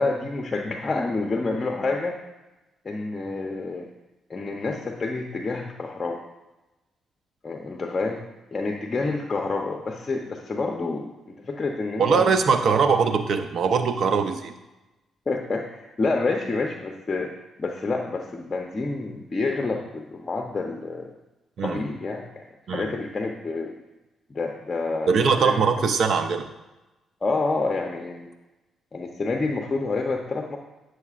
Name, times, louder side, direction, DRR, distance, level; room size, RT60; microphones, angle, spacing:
voice 1, 0.0-2.1 2.8-3.9 4.3-6.2 7.4-8.2 8.5-12.3 12.7-12.8 15.3-17.3 17.6-21.2 21.6-22.4 22.7-23.7 24.3-25.1 25.4-25.9 27.2-28.3 28.9-30.6, left 3 dB, 35° left, 2 dB, 0.7 m, -28 dB
voice 2, 12.0-14.5 21.6-21.8 22.7-22.9 25.1-26.5, right 5 dB, 65° right, 8 dB, 0.6 m, -21 dB
9.2 x 6.3 x 2.5 m, 1.0 s
supercardioid pair, 65°, 0 cm